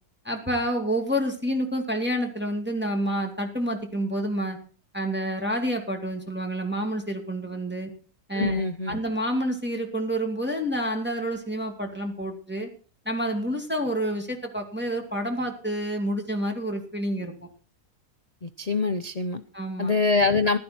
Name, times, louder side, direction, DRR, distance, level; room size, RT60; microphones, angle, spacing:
voice 1, 0.2-4.6 4.9-7.9 8.3-12.7 13.1-17.3 19.5-19.9, equal, 5° right, 2 dB, 2.3 m, -28 dB
voice 2, 8.3-9.0 18.4-19.4 19.8-20.6, left 4 dB, 85° left, 10 dB, 0.3 m, -24 dB
15.5 x 12.0 x 4.3 m, 0.39 s
omnidirectional pair, 1.7 m